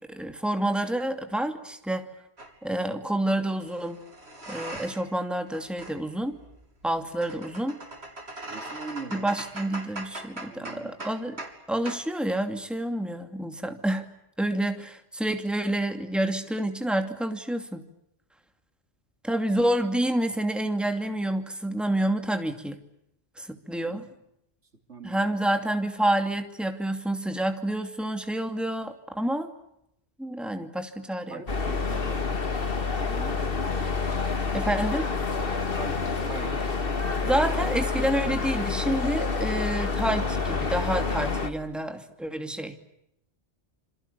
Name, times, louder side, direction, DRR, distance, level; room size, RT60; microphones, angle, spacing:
voice 1, 0.1-2.1 2.6-4.0 4.5-6.4 6.8-7.8 9.1-11.4 11.7-14.1 14.4-17.8 19.2-22.8 23.4-24.0 25.0-29.5 30.2-31.4 34.5-35.1 37.2-42.7, right 1 dB, ahead, 6 dB, 2.6 m, -28 dB
sound 1, 2.4-2.6 3.6-5.2 5.5-11.6 11.9-12.1, right 2 dB, 65° right, 3.9 m, -41 dB
voice 2, 8.4-9.3 10.3-10.9 23.8-24.1 24.9-25.3 31.3-32.2 33.0-33.5 35.7-36.7, right 4 dB, 85° right, 5 dB, 3.7 m, -41 dB
sound 2, 31.5-41.5, left 4 dB, 55° left, 2.2 m, -28 dB
28.0 x 26.5 x 7.0 m, 0.80 s
omnidirectional pair, 1.2 m